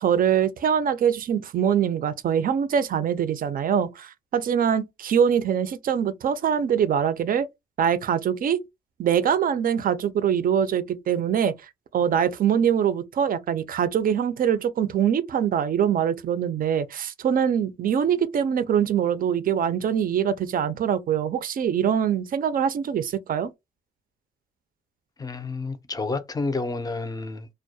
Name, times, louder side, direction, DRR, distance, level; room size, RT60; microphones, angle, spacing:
voice 1, 0.0-7.5 7.8-8.6 9.0-23.5, right 8 dB, 45° right, 0.4 m, -23 dB
voice 2, 25.2-27.5, left 3 dB, 20° left, 0.4 m, -30 dB
2.3 x 2.1 x 2.6 m
cardioid pair, 90°, 20 cm